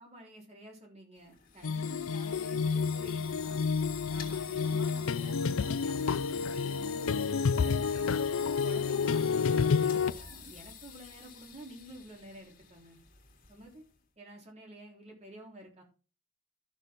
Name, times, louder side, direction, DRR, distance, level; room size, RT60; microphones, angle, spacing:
voice 1, 0.0-3.6 4.1-8.3 8.6-13.0 13.5-13.8 14.2-15.8, right 1 dB, 35° right, 0 dB, 3.5 m, -50 dB
sound 1, 1.2-14.0, left 6 dB, 45° left, 2.3 m, -48 dB
sound 2, 1.6-10.1, left 5 dB, 80° left, 0.5 m, -30 dB
13.0 x 6.7 x 3.7 m, 0.34 s
head